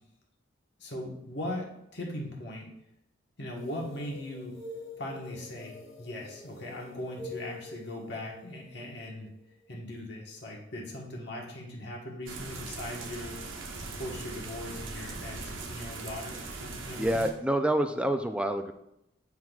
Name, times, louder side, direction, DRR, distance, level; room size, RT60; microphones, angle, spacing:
voice 1, 0.8-1.7 1.9-2.7 3.4-4.5 5.0-9.3 9.7-13.4 13.8-17.2, left 1 dB, 60° left, -1 dB, 1.3 m, -39 dB
sound 1, 3.5-10.0, left 2 dB, 85° left, 1.2 m, -46 dB
sound 2, 12.3-17.3, right 3 dB, 85° right, 1.0 m, -40 dB
voice 2, 17.0-18.7, right 1 dB, 5° right, 6 dB, 0.4 m, -27 dB
9.5 x 5.9 x 2.4 m, 0.81 s
head